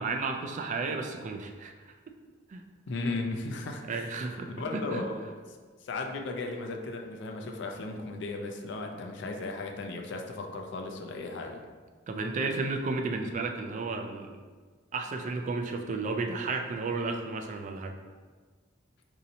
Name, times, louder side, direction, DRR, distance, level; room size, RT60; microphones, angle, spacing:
voice 1, 0.0-1.9 2.5-2.6 3.9-5.0 12.1-14.4 14.9-18.0, right 3 dB, 40° right, 4 dB, 0.3 m, -33 dB
voice 2, 2.9-4.1 4.3-5.4 5.8-11.6, left 3 dB, 65° left, 3 dB, 0.4 m, -36 dB
4.1 x 2.7 x 2.7 m, 1.5 s
head